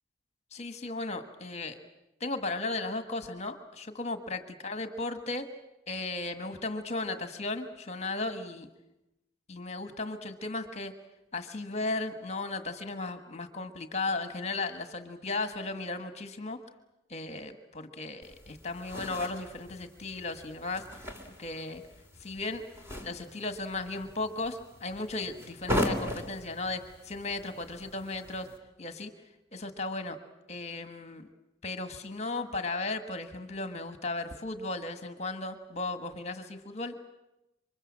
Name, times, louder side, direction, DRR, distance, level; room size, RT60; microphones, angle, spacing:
voice 1, 0.5-1.8 2.2-5.5 5.9-8.7 9.5-10.9 11.3-16.6 17.1-20.9 21.4-21.8 22.2-22.6 23.0-28.4 28.8-29.1 29.5-30.2 30.5-31.3 31.6-36.9, left 2 dB, 35° left, 8 dB, 1.5 m, -35 dB
Leather bag handling, 18.2-28.6, left 1 dB, 15° right, 3.1 m, -39 dB
27.5 x 24.5 x 7.5 m, 0.92 s
head